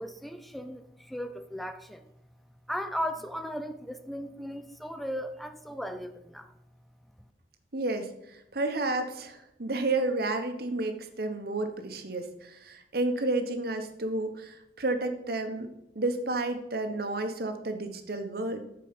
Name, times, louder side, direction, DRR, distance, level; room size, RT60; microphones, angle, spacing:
voice 1, 0.0-2.1 2.7-6.5, equal, ahead, 9 dB, 0.6 m, -36 dB
voice 2, 7.7-15.7 15.9-18.6, right 2 dB, 55° right, 7 dB, 1.1 m, -31 dB
13.5 x 4.5 x 5.2 m, 0.82 s
head